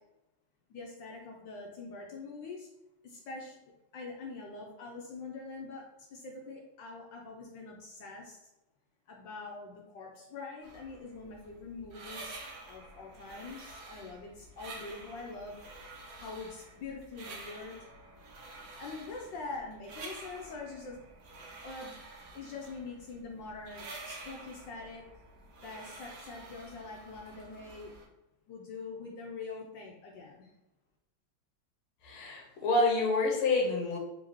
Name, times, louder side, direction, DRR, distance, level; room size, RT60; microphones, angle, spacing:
voice 1, 0.7-2.7 3.0-3.6 3.9-8.4 9.1-12.4 12.7-15.6 16.2-17.8 18.5-21.0 21.6-22.0 22.3-25.0 25.6-27.9 28.5-30.5, left 3 dB, 70° left, 0 dB, 1.2 m, -44 dB
sound 1, 10.6-28.1, right 2 dB, 65° right, 1.1 m, -49 dB
voice 2, 32.0-34.0, left 2 dB, 85° left, 0 dB, 1.7 m, -28 dB
3.9 x 3.2 x 3.0 m, 0.97 s
omnidirectional pair, 2.3 m